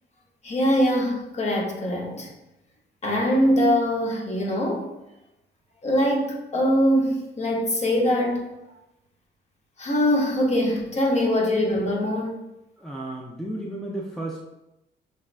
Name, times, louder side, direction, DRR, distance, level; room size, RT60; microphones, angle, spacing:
voice 1, 0.4-2.3 3.0-4.9 5.8-8.5 9.8-12.4, equal, 35° left, -1 dB, 0.9 m, -22 dB
voice 2, 12.8-14.4, right 1 dB, ahead, -1 dB, 0.4 m, -33 dB
5.5 x 2.1 x 2.4 m, 0.91 s
cardioid pair, 90°, 20 cm